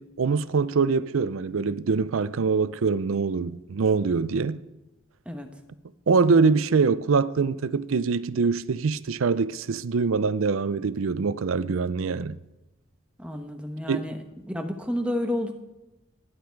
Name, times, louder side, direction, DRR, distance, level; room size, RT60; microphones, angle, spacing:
voice 1, 0.0-4.6 6.1-12.4 13.9-14.0, right 4 dB, 85° right, 0.5 m, -24 dB
voice 2, 13.2-15.5, left 1 dB, 5° right, 1.0 m, -30 dB
17.0 x 10.5 x 4.6 m
head